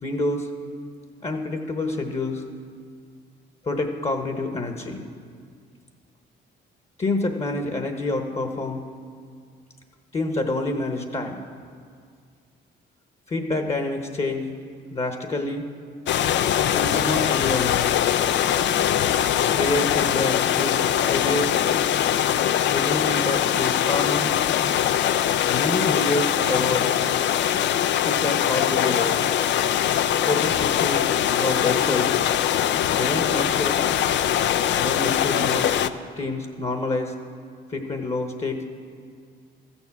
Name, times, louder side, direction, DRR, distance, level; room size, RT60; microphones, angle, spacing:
voice 1, 0.0-0.5 1.2-2.4 3.6-5.0 7.0-8.8 10.1-11.4 13.3-14.5 14.9-15.6 16.7-18.0 19.5-21.5 22.7-24.3 25.5-26.9 28.0-29.2 30.2-32.1 32.9-33.8 34.8-35.7 36.2-37.1 37.7-38.6, left 2 dB, 30° left, 5 dB, 1.1 m, -27 dB
sound 1, 16.1-35.9, left 10 dB, 65° left, 0.4 m, -22 dB
14.0 x 7.1 x 7.1 m, 2.1 s
cardioid pair, 90°, 20 cm